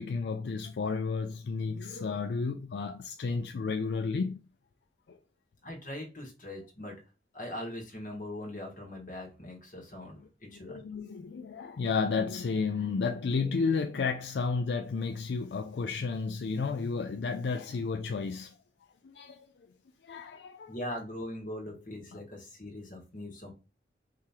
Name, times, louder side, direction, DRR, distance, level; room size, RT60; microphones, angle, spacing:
voice 1, 0.0-4.4 10.5-18.5 19.0-19.5 20.0-20.7 22.1-22.2, left 4 dB, 75° left, 0.4 m, -32 dB
voice 2, 5.6-6.9 7.3-10.8 20.7-23.5, left 1 dB, 50° left, 1.5 m, -41 dB
4.8 x 2.9 x 3.5 m
head